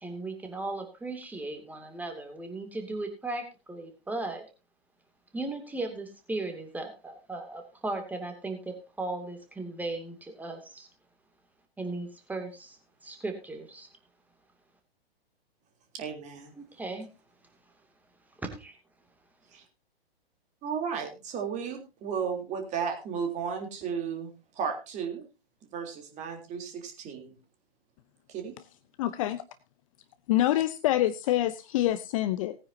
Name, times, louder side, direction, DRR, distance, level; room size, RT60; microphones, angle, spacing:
voice 1, 0.0-4.4 5.3-10.9 11.8-12.8 13.0-13.9 16.6-17.1 18.4-18.7, right 2 dB, 5° right, 5 dB, 2.6 m, -37 dB
voice 2, 15.9-16.5 19.5-19.6 20.6-25.2 25.7-27.4 28.3-28.6, right 6 dB, 25° right, 4 dB, 3.4 m, -34 dB
voice 3, 29.0-29.4 30.3-32.6, left 14 dB, 35° left, 13 dB, 0.8 m, -26 dB
19.0 x 9.6 x 2.8 m, 0.29 s
figure-of-eight pair, 115°, 30 cm